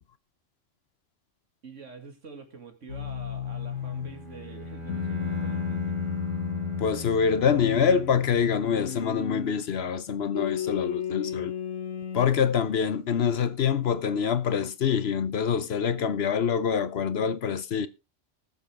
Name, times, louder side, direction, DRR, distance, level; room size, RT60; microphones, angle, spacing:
voice 1, 1.6-6.0, right 4 dB, 75° right, 2.6 m, -46 dB
sound 1, 2.9-4.2 4.9-7.0 7.6-9.6 10.3-12.3, left 8 dB, 80° left, 1.6 m, -33 dB
Bowed string instrument, 3.7-8.5, left 1 dB, 40° right, 3.2 m, -38 dB
voice 2, 6.8-11.5 12.1-17.9, left 7 dB, 60° left, 0.9 m, -25 dB
20.0 x 6.9 x 3.4 m
omnidirectional pair, 1.3 m